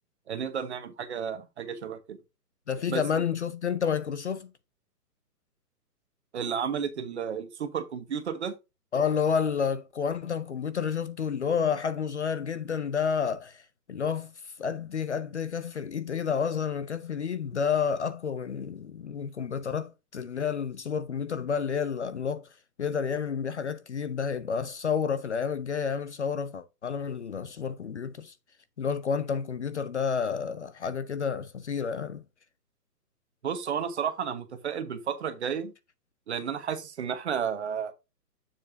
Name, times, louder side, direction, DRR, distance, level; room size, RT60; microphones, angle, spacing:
voice 1, 0.3-2.2 2.9-3.0 6.3-8.5 33.4-35.7 36.3-37.9, right 7 dB, 45° right, 1.2 m, -32 dB
voice 2, 2.7-4.5 8.9-14.3 14.6-22.5 22.8-28.3 28.8-32.2, left 6 dB, 45° left, 0.5 m, -30 dB
7.2 x 7.0 x 2.7 m
hypercardioid pair, 170°, 48 cm